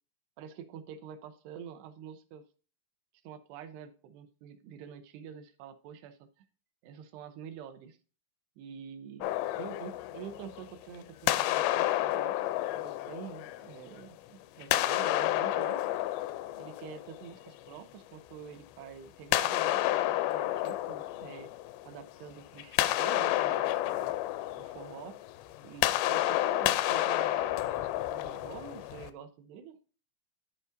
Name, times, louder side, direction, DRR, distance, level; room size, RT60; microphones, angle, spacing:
voice 1, 0.4-2.4 3.2-6.5 6.8-8.0 8.6-9.3 9.6-12.4 12.7-15.9 16.6-21.5 21.9-24.1 24.6-25.2 25.6-29.8, right 8 dB, 75° right, 9 dB, 2.6 m, -47 dB
sound 1, 9.2-10.8 11.3-14.1 14.6-17.5 19.3-22.1 22.4-29.1, left 15 dB, 85° left, 2.5 m, -30 dB
13.5 x 5.1 x 2.6 m, 0.38 s
omnidirectional pair, 5.3 m